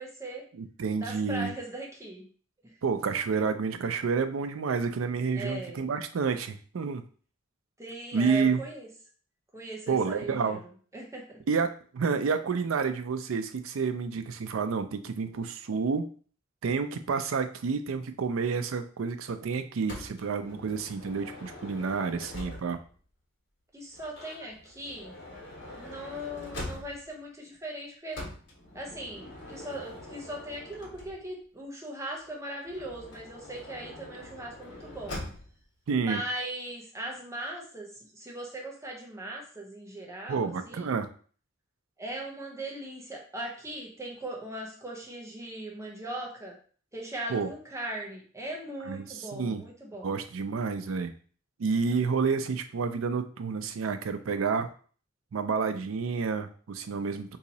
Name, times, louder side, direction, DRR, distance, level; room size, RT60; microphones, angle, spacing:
voice 1, 0.0-0.4 1.0-2.3 2.6-2.7 5.3-5.8 7.8-8.9 9.5-11.4 23.7-25.1 25.8-28.2 28.7-35.2 36.0-41.0 42.0-46.6 46.9-50.1, right 1 dB, 15° right, -1 dB, 0.7 m, -39 dB
voice 2, 0.6-1.5 2.8-7.0 8.1-8.6 9.9-10.6 11.5-16.1 16.6-22.8 35.9-36.2 40.3-41.1 47.3-47.5 48.9-49.6 50.0-51.1 51.6-54.7 55.3-57.4, right 5 dB, 90° right, 9 dB, 0.4 m, -29 dB
Motor vehicle (road) / Sliding door, 19.9-23.0 23.9-27.2 28.1-31.4 32.7-35.6, left 1 dB, 65° left, 1.2 m, -43 dB
2.9 x 2.7 x 4.0 m, 0.43 s
head